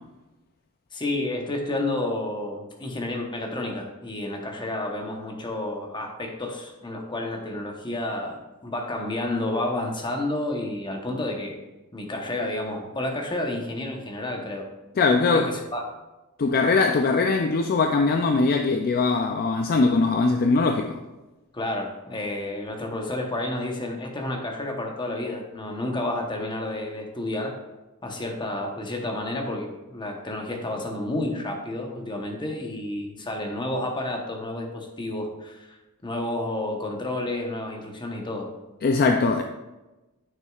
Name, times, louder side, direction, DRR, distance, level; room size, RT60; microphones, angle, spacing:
voice 1, 0.9-11.6 11.9-14.7 15.3-15.9 21.5-27.6 28.0-35.8 36.0-38.5, left 1 dB, 20° left, 0.9 m, -30 dB
voice 2, 15.0-15.5 16.4-21.0 38.8-39.4, left 3 dB, 40° left, 0.4 m, -21 dB
9.1 x 6.3 x 2.4 m
head